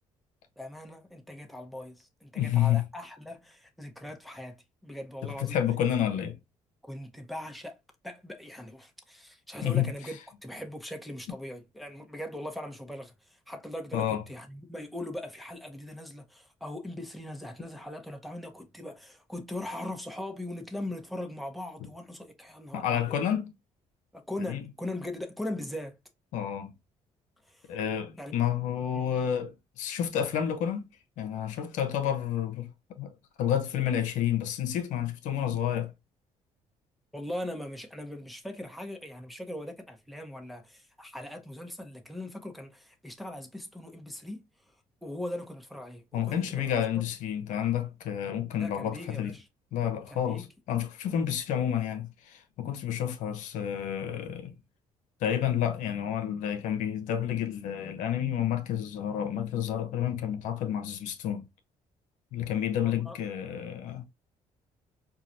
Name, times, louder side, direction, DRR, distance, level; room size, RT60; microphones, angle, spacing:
voice 1, 0.6-5.6 6.8-7.8 8.0-23.2 24.1-26.0 27.5-27.7 28.2-28.4 28.9-29.1 37.1-44.4 45.0-46.6 46.9-47.0 48.5-49.5 50.1-50.5 62.8-63.2, left 1 dB, ahead, 0.9 m, -40 dB
voice 2, 2.4-2.8 5.2-6.4 9.6-9.9 13.9-14.2 22.7-23.5 24.4-24.6 26.3-26.7 27.7-30.8 31.2-32.7 33.0-33.1 33.4-35.9 46.1-49.3 49.7-54.5 55.2-61.5 62.3-64.0, left 10 dB, 80° left, 0.8 m, -30 dB
4.7 x 2.3 x 2.7 m
cardioid pair, 80°, 13 cm